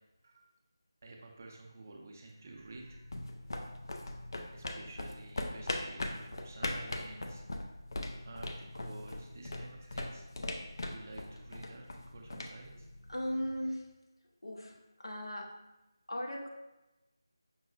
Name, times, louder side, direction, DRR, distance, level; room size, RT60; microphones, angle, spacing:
voice 1, 1.0-3.0 4.5-7.4 8.2-10.2 10.8-12.9, right 2 dB, 35° right, 1 dB, 0.4 m, -51 dB
sound 1, 2.7-13.5, left 1 dB, 60° left, 0.4 m, -41 dB
voice 2, 13.1-13.9 14.4-15.6 16.1-16.5, equal, 85° left, 0 dB, 0.7 m, -37 dB
5.4 x 2.0 x 2.5 m, 1.0 s
figure-of-eight pair, 165°, 2 cm